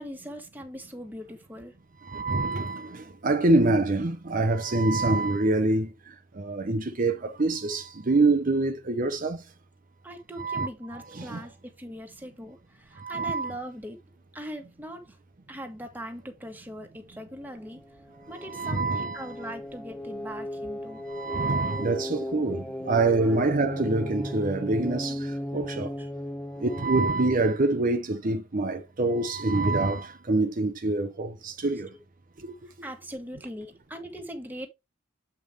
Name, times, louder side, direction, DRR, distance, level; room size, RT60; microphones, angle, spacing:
voice 1, 0.0-1.8 10.0-14.0 14.3-15.2 15.5-17.8 18.3-21.0 23.2-23.4 26.0-26.1 32.6-34.7, equal, 10° right, 1.6 m, -40 dB
voice 2, 2.0-9.4 10.4-11.4 13.0-13.6 18.4-19.3 21.1-26.0 26.6-31.9 32.4-32.5, right 2 dB, 45° right, 0.8 m, -26 dB
sound 1, 17.4-26.9, left 1 dB, 5° left, 0.5 m, -36 dB
8.2 x 5.1 x 3.3 m
head